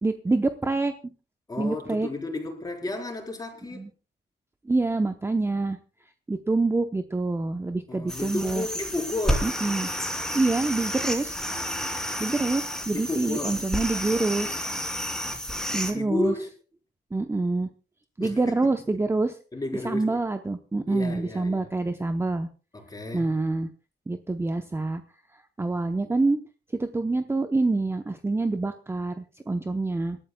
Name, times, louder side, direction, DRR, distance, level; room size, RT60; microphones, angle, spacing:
voice 1, 0.0-0.9 1.6-2.1 3.7-3.9 4.6-5.8 6.3-8.7 9.4-9.9 10.3-11.4 12.2-14.6 15.7-16.3 17.1-17.7 18.2-19.3 19.8-22.5 23.1-23.7 24.1-25.0 25.3-26.4 26.8-30.2, right 3 dB, 15° right, 0.8 m, -26 dB
voice 2, 1.5-3.8 7.9-9.5 12.9-13.6 15.2-15.4 15.9-16.5 18.2-18.6 19.5-20.2 20.9-21.7 22.7-23.3, left 2 dB, 20° left, 4.4 m, -32 dB
sound 1, 8.1-15.9, equal, 5° left, 3.0 m, -30 dB
27.0 x 12.5 x 2.3 m
cardioid pair, 130°, 18 cm